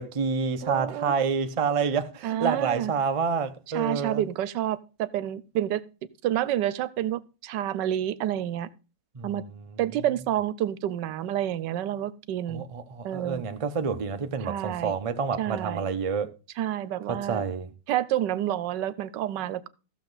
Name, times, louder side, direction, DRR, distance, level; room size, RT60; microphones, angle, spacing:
voice 1, 0.0-4.2 9.1-9.3 12.5-16.4 17.1-17.7, right 5 dB, 40° right, 0.4 m, -28 dB
voice 2, 0.6-1.1 2.2-2.9 3.7-5.8 6.2-8.7 9.2-9.4 9.8-12.6 13.0-13.4 14.4-14.9 15.4-15.8 16.6-17.4 17.9-19.7, right 12 dB, 80° right, 1.3 m, -29 dB
14.5 x 7.0 x 4.0 m
omnidirectional pair, 1.9 m